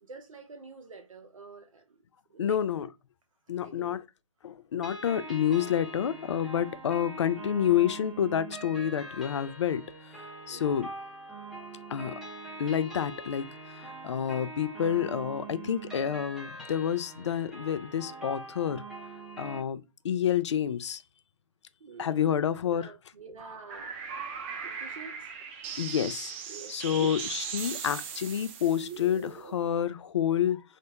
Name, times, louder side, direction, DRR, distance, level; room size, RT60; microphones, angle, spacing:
voice 1, 0.0-2.0 2.3-2.6 3.5-4.0 10.5-10.8 21.8-24.0 24.6-25.3 26.5-27.1, right 5 dB, 75° right, 0.7 m, -47 dB
voice 2, 2.4-2.9 3.5-4.0 4.4-9.9 10.5-10.9 11.9-12.2 12.6-13.5 13.8-18.8 19.4-21.0 22.0-22.9 25.8-26.3 26.7-30.6, left 9 dB, 60° left, 0.4 m, -29 dB
sound 1, 4.8-19.6, right 2 dB, ahead, 0.8 m, -43 dB
sound 2, 23.4-29.8, right 6 dB, 25° right, 0.4 m, -39 dB
3.3 x 2.1 x 2.9 m
figure-of-eight pair, 140°, 17 cm